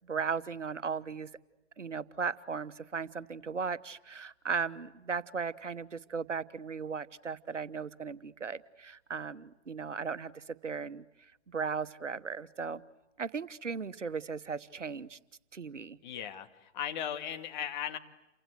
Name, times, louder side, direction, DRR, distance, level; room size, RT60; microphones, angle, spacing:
voice 1, 0.0-1.3 1.8-11.0 11.5-12.8 13.2-15.2 15.5-16.0, right 5 dB, 85° right, 15 dB, 1.2 m, -37 dB
voice 2, 16.0-18.0, left 9 dB, 40° left, 7 dB, 2.2 m, -37 dB
29.5 x 25.0 x 8.0 m, 0.99 s
figure-of-eight pair, 125°, 36 cm